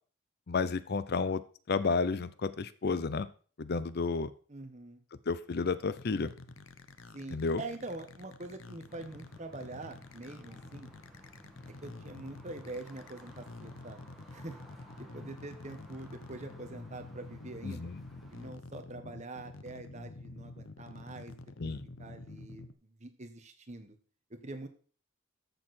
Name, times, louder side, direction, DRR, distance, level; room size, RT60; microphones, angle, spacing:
voice 1, 0.5-1.4 1.7-3.3 3.6-4.3 5.3-6.3 7.3-7.6 17.6-18.0 21.6-21.8, left 4 dB, 55° left, 15 dB, 0.6 m, -31 dB
voice 2, 4.5-5.0 7.1-10.9 11.7-14.0 14.3-17.9 18.3-21.7 22.0-24.0 24.3-24.7, right 2 dB, 35° right, 7 dB, 1.4 m, -45 dB
sound 1, 5.9-22.7, left 2 dB, 90° left, 0.9 m, -49 dB
sound 2, 8.9-18.5, equal, ahead, 2.0 m, -56 dB
13.5 x 6.7 x 4.3 m, 0.42 s
head